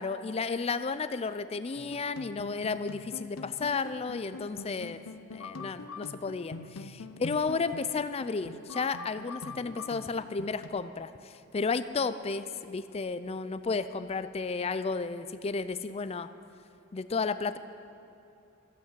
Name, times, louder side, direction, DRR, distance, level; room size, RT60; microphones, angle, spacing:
voice 1, 0.0-5.0 5.3-16.3 16.9-17.6, left 4 dB, 30° left, 12 dB, 0.4 m, -33 dB
sound 1, 1.8-10.7, left 3 dB, 85° left, 0.7 m, -44 dB
13.5 x 8.3 x 7.5 m, 2.9 s
head